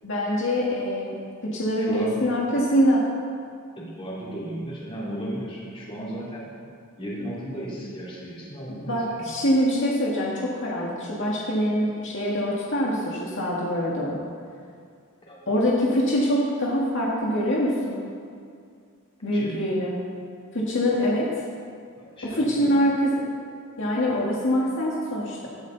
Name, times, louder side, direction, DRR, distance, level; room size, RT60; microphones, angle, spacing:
voice 1, 0.0-1.1 1.4-3.0 8.7-14.2 15.5-18.0 19.2-19.9 20.5-21.3 22.2-23.1 23.8-25.5, equal, 65° left, -5 dB, 2.0 m, -24 dB
voice 2, 1.8-2.2 3.8-6.5 7.0-9.3 15.2-15.5 19.3-19.6 22.0-22.7, right 1 dB, 25° left, -6 dB, 3.8 m, -35 dB
17.0 x 12.0 x 4.1 m, 2.3 s
head